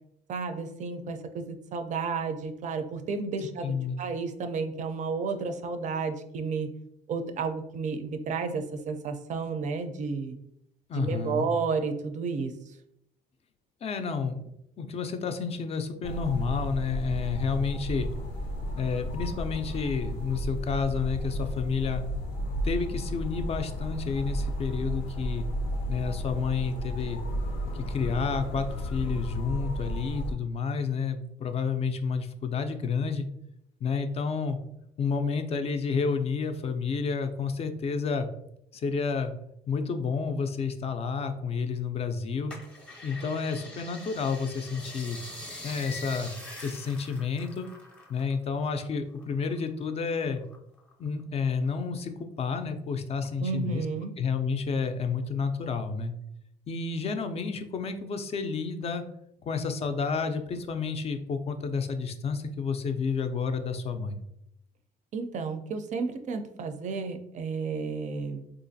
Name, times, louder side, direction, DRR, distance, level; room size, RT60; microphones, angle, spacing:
voice 1, 0.3-6.7 7.1-10.4 10.9-12.6 53.4-54.2 65.1-68.4, right 5 dB, 45° right, 8 dB, 0.4 m, -32 dB
voice 2, 3.6-4.0 10.9-11.5 13.8-14.5 14.8-18.1 18.8-22.0 22.6-25.5 25.9-27.2 27.7-33.3 33.8-34.6 35.0-38.3 38.7-39.3 39.7-42.5 43.0-45.2 45.6-46.3 46.6-47.7 48.1-50.4 51.0-52.1 52.4-53.8 54.2-56.1 56.7-59.0 59.5-64.2, left 5 dB, 35° left, 7 dB, 0.4 m, -30 dB
sound 1, 16.0-30.3, equal, 85° left, 0.5 m, -33 dB
sound 2, 42.5-48.3 48.6-49.9 50.4-51.2 51.7-51.8, left 1 dB, 5° left, 0.7 m, -44 dB
3.8 x 2.4 x 2.6 m, 0.80 s
cardioid pair, 110°, 17 cm